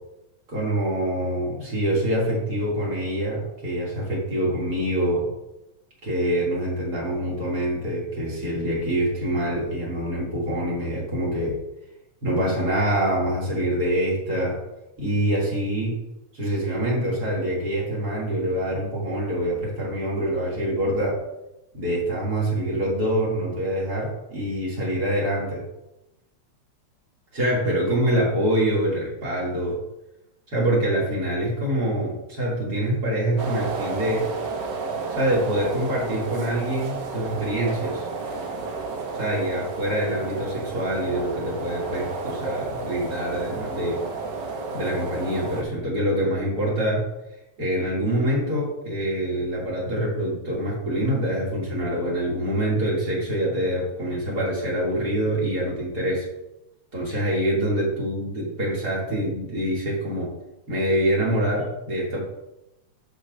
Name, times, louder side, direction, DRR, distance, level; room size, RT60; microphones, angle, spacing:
voice 1, 0.5-5.3 6.0-11.5 12.2-14.6 15.0-16.0 16.3-21.2 21.7-25.6 27.3-29.8 30.5-34.2 35.1-38.1 39.2-44.0 44.7-47.1 47.6-56.3 56.9-60.3 60.7-62.2, right 1 dB, 30° right, -5 dB, 3.1 m, -25 dB
sound 1, 33.4-45.6, right 3 dB, 90° right, 0.9 m, -31 dB
13.5 x 5.3 x 2.7 m, 0.90 s
omnidirectional pair, 3.4 m